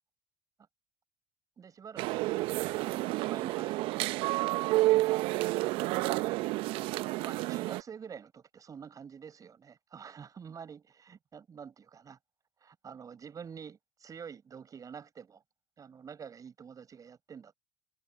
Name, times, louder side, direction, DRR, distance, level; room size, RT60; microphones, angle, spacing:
voice 1, 1.6-5.1 6.0-6.9 7.2-12.2 12.6-15.4 15.8-17.5, right 7 dB, 35° right, 7.3 m, -48 dB
sound 1, 2.0-7.8, right 19 dB, 60° right, 0.9 m, -30 dB
hypercardioid pair, 70°, 10 cm